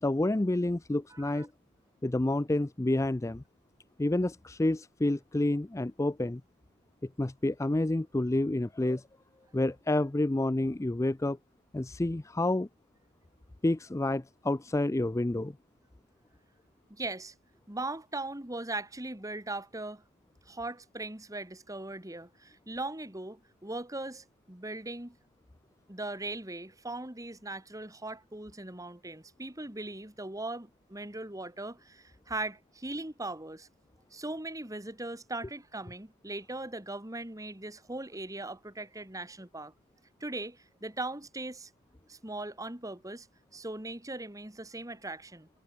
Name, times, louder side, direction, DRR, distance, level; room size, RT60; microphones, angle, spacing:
voice 1, 0.0-1.5 2.0-3.4 4.0-6.4 7.2-9.0 9.5-11.4 11.7-12.7 13.6-15.5, left 1 dB, 15° left, 0.4 m, -29 dB
voice 2, 1.1-1.5 16.9-17.3 17.7-20.0 20.5-25.2 25.9-33.7 34.1-39.7 40.2-41.7 42.1-43.3 43.5-45.5, right 2 dB, 15° right, 2.0 m, -39 dB
head